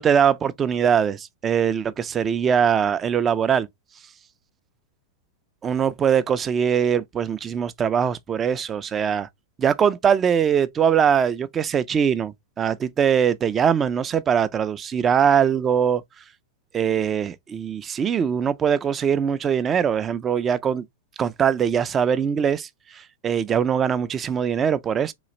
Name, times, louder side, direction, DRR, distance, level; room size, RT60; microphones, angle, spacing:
voice 1, 0.0-3.7 5.6-9.3 9.6-16.0 16.7-20.8 21.2-22.7 23.2-25.1, right 7 dB, 25° right, 0.4 m, -22 dB
3.9 x 2.4 x 3.1 m
hypercardioid pair, 110°, 0 cm